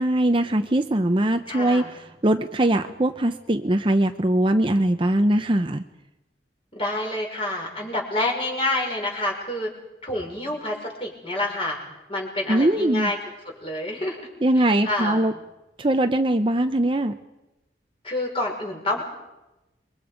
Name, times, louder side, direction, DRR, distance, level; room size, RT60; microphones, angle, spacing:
voice 1, 0.0-5.8 12.5-13.1 14.4-15.3 15.8-17.1, right 1 dB, 30° right, 7 dB, 0.8 m, -21 dB
voice 2, 1.5-1.9 6.7-9.7 10.0-11.8 12.1-13.2 13.4-14.2 14.5-15.3 18.0-19.0, left 1 dB, 30° left, 0 dB, 5.9 m, -28 dB
28.0 x 23.0 x 5.2 m, 0.99 s
head